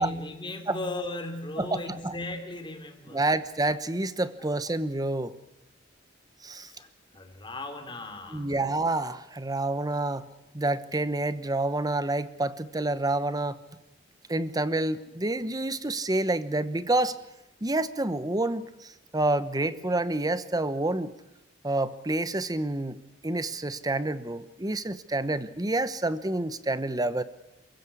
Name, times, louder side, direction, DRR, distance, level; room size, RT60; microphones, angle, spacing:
voice 1, 0.0-3.3 6.6-6.9 7.1-8.6, left 2 dB, 25° left, 6 dB, 3.3 m, -37 dB
voice 2, 1.6-2.1 3.1-5.4 6.4-6.7 8.3-10.2 10.5-13.6 14.3-17.2 17.6-21.1 21.6-23.0 23.2-27.2, right 2 dB, 20° right, 14 dB, 1.0 m, -28 dB
28.0 x 15.5 x 8.5 m, 0.96 s
head